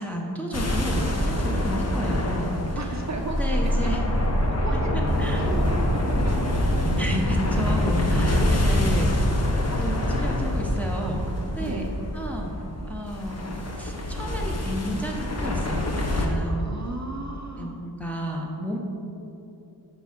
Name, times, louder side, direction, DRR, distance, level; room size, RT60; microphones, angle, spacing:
voice 1, 0.0-2.6 3.4-4.0 4.9-5.5 7.0-9.3 9.8-11.9 12.1-12.6 12.9-13.5 13.7-15.8 16.2-16.7 17.6-18.8, equal, 5° left, -1 dB, 0.8 m, -32 dB
sound 1, 0.5-16.3, left 1 dB, 40° left, 0.9 m, -25 dB
voice 2, 2.8-3.9 4.4-6.0 6.5-6.8 9.6-9.8 11.6-11.9 16.5-17.9, right 3 dB, 40° right, 1 dB, 0.7 m, -36 dB
6.0 x 5.5 x 5.8 m, 2.9 s
wide cardioid pair, 120°, 41 cm